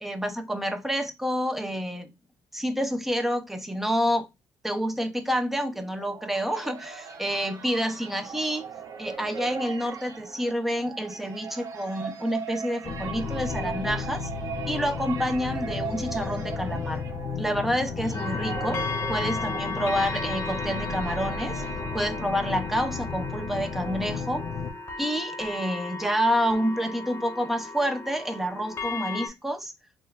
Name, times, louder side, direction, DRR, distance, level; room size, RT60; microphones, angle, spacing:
voice 1, 0.0-2.1 2.5-4.3 4.6-8.7 9.0-14.3 14.7-17.0 17.4-18.8 19.1-21.6 21.9-24.5 25.0-29.7, equal, 5° right, 0.7 m, -28 dB
sound 1, 5.7-22.7, right 6 dB, 50° right, 0.9 m, -39 dB
sound 2, 12.8-24.7, left 5 dB, 55° left, 0.6 m, -34 dB
sound 3, 18.1-29.3, left 3 dB, 35° left, 0.9 m, -36 dB
6.2 x 2.2 x 2.4 m
cardioid pair, 105°, 8 cm